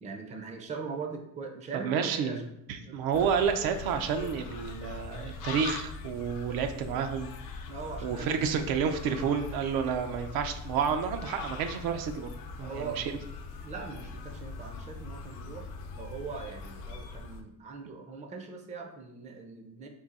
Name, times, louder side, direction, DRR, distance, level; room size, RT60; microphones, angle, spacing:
voice 1, 0.0-3.0 7.7-8.7 12.6-13.0 13.6-15.7 15.9-19.9, right 4 dB, 20° right, 4 dB, 0.4 m, -41 dB
voice 2, 1.8-2.4 2.9-7.3 8.0-12.3 12.6-13.0, right 7 dB, 80° right, 7 dB, 0.6 m, -30 dB
sound 1, 3.1-17.4, left 4 dB, 65° left, 0.6 m, -42 dB
3.8 x 2.7 x 4.0 m, 0.78 s
cardioid pair, 150°, 35 cm